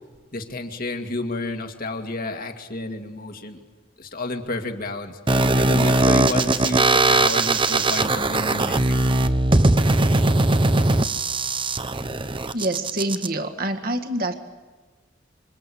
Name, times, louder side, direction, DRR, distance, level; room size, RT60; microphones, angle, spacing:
voice 1, 0.3-3.6 4.0-5.2 5.6-9.2, left 2 dB, 50° left, 5 dB, 2.3 m, -30 dB
sound 1, 5.3-13.3, right 2 dB, 25° right, 0.8 m, -20 dB
voice 2, 12.5-14.4, right 1 dB, 50° right, 5 dB, 1.8 m, -26 dB
26.5 x 25.5 x 8.6 m, 1.4 s
head